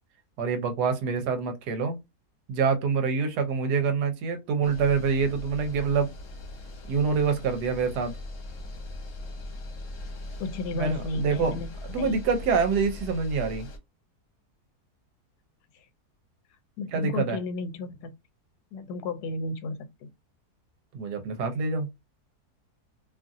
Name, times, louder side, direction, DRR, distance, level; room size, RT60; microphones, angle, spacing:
voice 1, 0.4-2.0 2.5-6.1 6.9-8.1 10.7-11.6 11.8-13.7 16.9-17.4 20.9-21.9, right 5 dB, 80° right, 1.3 m, -26 dB
sound 1, 4.6-13.8, left 1 dB, 60° left, 1.2 m, -40 dB
voice 2, 10.4-11.7 12.0-12.2 16.8-18.1 18.7-20.1, left 3 dB, 80° left, 1.1 m, -33 dB
2.9 x 2.4 x 2.5 m
omnidirectional pair, 1.7 m